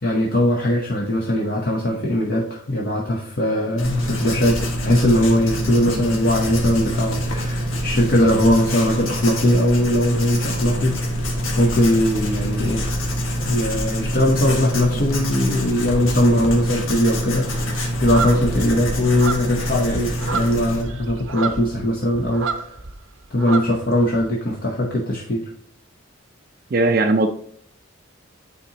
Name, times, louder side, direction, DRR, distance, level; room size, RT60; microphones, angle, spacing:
voice 1, 0.0-11.3 11.6-12.9 13.5-22.8 23.3-25.5, left 1 dB, 45° left, -2 dB, 0.9 m, -20 dB
Writing, 3.8-20.8, equal, 90° left, 1.4 m, -25 dB
voice 2, 5.9-6.2 26.7-27.3, right 2 dB, 50° right, 4 dB, 0.4 m, -19 dB
sound 1, 18.0-23.0 23.2-24.2, right 4 dB, 80° right, 0.7 m, -29 dB
9.2 x 3.9 x 2.8 m, 0.62 s
head